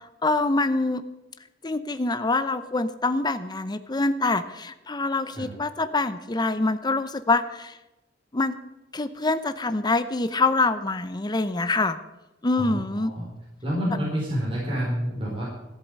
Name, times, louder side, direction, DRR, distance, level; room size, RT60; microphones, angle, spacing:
voice 1, 0.2-1.0 1.6-7.7 8.3-8.5 8.9-12.0 12.4-13.1, left 3 dB, 25° left, 11 dB, 0.7 m, -25 dB
voice 2, 12.6-13.3 13.6-15.4, equal, 30° right, -5 dB, 4.2 m, -28 dB
14.0 x 8.4 x 7.7 m, 0.97 s
head